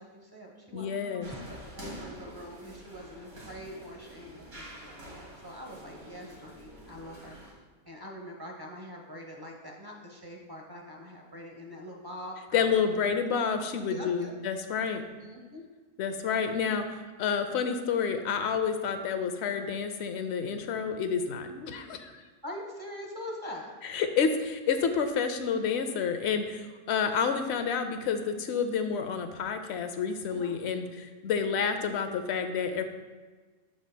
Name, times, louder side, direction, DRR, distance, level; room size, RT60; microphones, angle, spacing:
voice 1, 0.0-7.4 7.9-13.1 13.9-14.3 15.1-15.6 21.5-21.7 22.4-23.8 30.3-30.5, left 1 dB, 20° right, 0 dB, 0.7 m, -44 dB
voice 2, 0.7-1.3 12.5-15.0 16.0-22.1 23.8-32.8, left 6 dB, 65° left, 8 dB, 0.7 m, -29 dB
sound 1, 1.2-7.5, equal, 75° right, 2.9 m, -46 dB
12.0 x 5.4 x 2.2 m, 1.3 s
omnidirectional pair, 1.5 m